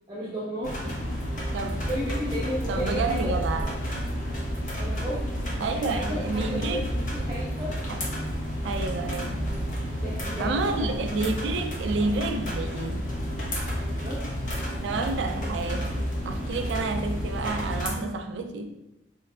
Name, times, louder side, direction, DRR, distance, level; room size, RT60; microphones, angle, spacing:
voice 1, 0.1-1.0 1.9-3.8 4.8-7.8 9.9-10.9 12.0-12.1 13.7-14.4, equal, 25° right, -10 dB, 0.8 m, -34 dB
sound 1, 0.6-17.9, equal, 45° left, 0.9 m, -30 dB
voice 2, 1.5-1.9 2.7-3.7 5.6-6.9 7.9-8.1 8.6-9.4 10.4-13.1 13.6-13.9 14.8-18.7, right 3 dB, 75° right, 5 dB, 0.3 m, -30 dB
4.4 x 3.2 x 2.3 m, 0.96 s
head